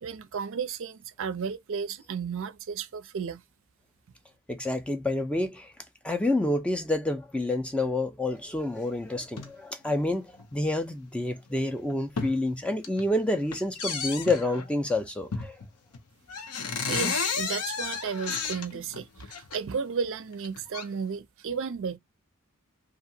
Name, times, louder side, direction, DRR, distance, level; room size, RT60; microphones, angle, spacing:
voice 1, 0.0-3.4 16.4-22.0, right 6 dB, 65° right, 0.4 m, -34 dB
voice 2, 4.5-5.7 6.0-15.6, left 2 dB, 5° left, 0.4 m, -28 dB
sound 1, 9.2-9.5 10.4-10.5 11.2-11.3 11.7-12.4 12.7-13.1 13.5-14.7 15.3-15.7 15.9-16.0 16.3-19.6 20.3-20.8, left 5 dB, 90° left, 0.7 m, -32 dB
2.8 x 2.4 x 2.6 m
head